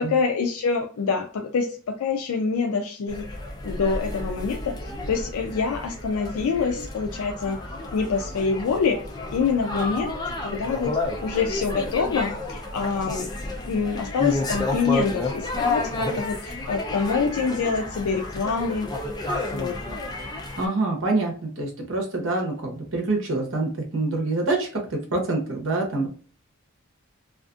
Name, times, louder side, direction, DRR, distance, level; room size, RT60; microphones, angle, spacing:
voice 1, 0.0-3.3 3.6-4.7 5.1-7.6 7.9-9.0 9.3-10.2 10.4-13.3 13.6-18.9 19.5-19.8, left 5 dB, 85° left, 2 dB, 0.4 m, -26 dB
sound 1, 3.1-20.7, left 2 dB, 20° left, 0.4 m, -31 dB
voice 2, 20.6-26.1, right 2 dB, 60° right, 0 dB, 0.9 m, -26 dB
2.5 x 2.4 x 2.4 m, 0.42 s
head